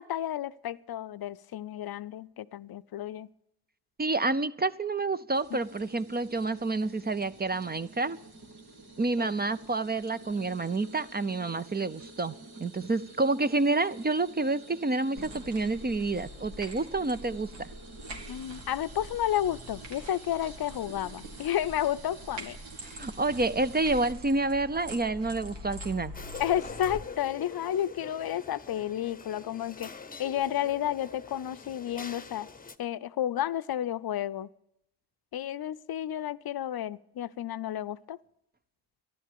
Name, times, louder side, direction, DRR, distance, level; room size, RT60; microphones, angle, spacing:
voice 1, 0.0-3.3 5.5-5.6 9.2-9.3 18.3-22.6 26.4-29.9 30.2-32.5 32.8-34.5 35.3-38.2, left 11 dB, 60° left, 0.6 m, -31 dB
voice 2, 4.0-8.2 9.0-12.3 12.6-17.7 22.9-26.1, right 3 dB, 25° right, 0.6 m, -29 dB
sound 1, 5.3-24.1, right 2 dB, 60° right, 2.4 m, -50 dB
sound 2, 15.2-27.0, right 1 dB, 85° right, 2.3 m, -44 dB
sound 3, 26.1-32.8, left 5 dB, 20° left, 0.9 m, -45 dB
12.5 x 11.0 x 8.5 m
cardioid pair, 75°, 43 cm